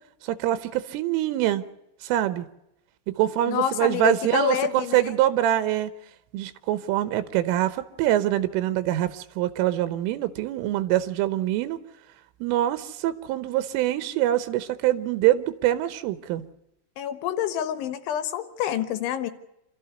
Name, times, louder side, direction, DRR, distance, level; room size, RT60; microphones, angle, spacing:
voice 1, 0.2-1.6 2.0-2.5 3.1-5.9 6.3-11.8 12.4-16.4, right 13 dB, 85° right, 13 dB, 3.6 m, -24 dB
voice 2, 3.5-5.0 17.0-19.3, left 9 dB, 75° left, 11 dB, 3.5 m, -27 dB
27.5 x 13.5 x 8.0 m, 0.86 s
omnidirectional pair, 5.6 m